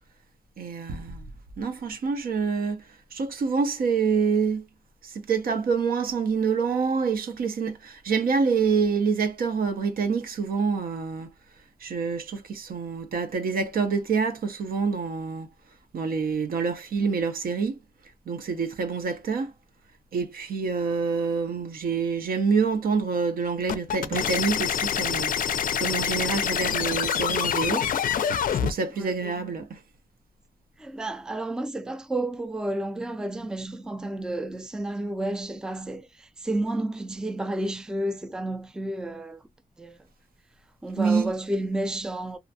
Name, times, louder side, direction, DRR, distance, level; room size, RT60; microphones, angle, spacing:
voice 1, 0.6-1.2 1.6-2.8 3.1-4.6 5.0-11.3 11.8-15.5 15.9-17.7 18.3-19.5 20.1-27.9 28.5-29.8 41.0-41.3, right 5 dB, 75° right, 0.6 m, -27 dB
sound 1, 23.7-28.7, left 8 dB, 65° left, 0.4 m, -26 dB
voice 2, 29.0-29.4 30.8-39.4 39.8-40.0 40.8-42.4, right 1 dB, 5° right, 0.3 m, -31 dB
2.5 x 2.1 x 2.7 m
cardioid pair, 80°, 15 cm